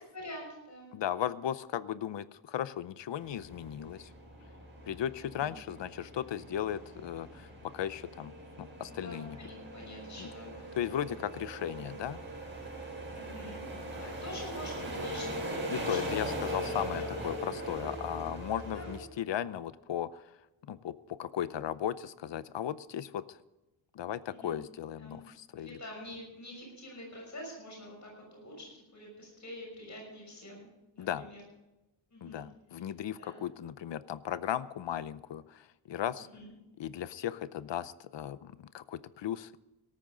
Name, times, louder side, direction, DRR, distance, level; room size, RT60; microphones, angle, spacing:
voice 1, 0.1-0.9 5.2-5.6 8.9-10.5 10.8-11.0 13.1-13.6 14.0-15.4 15.7-17.1 18.7-19.0 24.3-24.6 25.0-25.2 25.6-31.4 32.1-32.4 33.2-33.4 36.3-36.5, left 1 dB, 40° left, -1 dB, 6.3 m, -46 dB
voice 2, 0.9-4.1 4.9-7.5 7.7-8.3 8.6-9.4 10.2-10.3 10.8-12.2 15.7-20.2 20.7-23.4 23.9-25.8 31.0-31.3 32.2-36.3 36.8-39.6, left 10 dB, 70° left, 15 dB, 0.7 m, -36 dB
sound 1, 3.2-19.0, right 1 dB, 25° right, 5.3 m, -40 dB
17.5 x 13.5 x 3.8 m, 1.0 s
wide cardioid pair, 160°, 44 cm